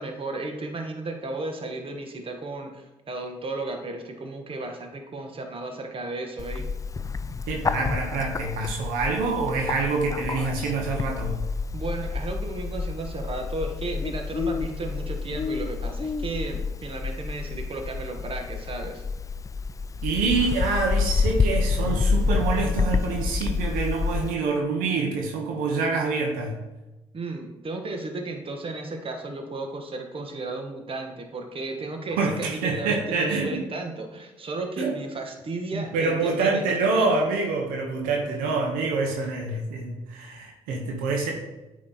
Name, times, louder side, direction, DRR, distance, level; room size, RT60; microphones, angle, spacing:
voice 1, 0.0-6.7 11.7-19.0 27.1-37.1, right 2 dB, 40° right, 4 dB, 1.2 m, -34 dB
Bird, 6.4-24.3, left 4 dB, 25° left, 0.3 m, -28 dB
voice 2, 7.5-11.4 20.0-26.6 32.2-33.6 34.8-34.9 35.7-41.3, right 3 dB, 80° right, 1 dB, 1.1 m, -26 dB
8.5 x 3.3 x 4.2 m, 1.0 s
hypercardioid pair, 50°, 14 cm